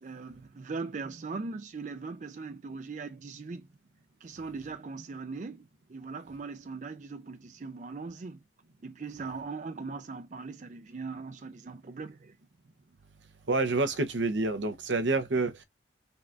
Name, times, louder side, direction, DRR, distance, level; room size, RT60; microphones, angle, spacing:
voice 1, 0.0-3.7 4.2-8.4 8.8-12.3, right 4 dB, 40° right, 0.4 m, -40 dB
voice 2, 13.5-15.6, right 3 dB, 80° right, 0.8 m, -28 dB
4.0 x 2.4 x 3.3 m
head